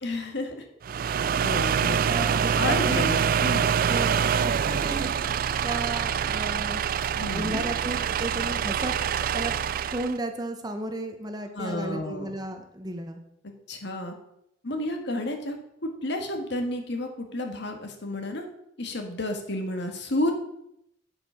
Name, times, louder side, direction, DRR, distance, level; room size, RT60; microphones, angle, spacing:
voice 1, 0.0-0.6 1.4-1.9 2.5-3.7 7.2-7.7 11.5-12.3 13.7-14.1 14.6-18.5 18.8-20.3, left 1 dB, 60° left, 4 dB, 1.7 m, -31 dB
sound 1, 0.8-10.2, right 7 dB, 45° right, 0.3 m, -25 dB
voice 2, 1.8-3.2 3.9-5.3 5.6-6.8 7.3-8.9 9.3-9.5 9.9-13.2, right 2 dB, 20° right, 6 dB, 1.0 m, -34 dB
9.1 x 7.6 x 5.7 m, 0.78 s
head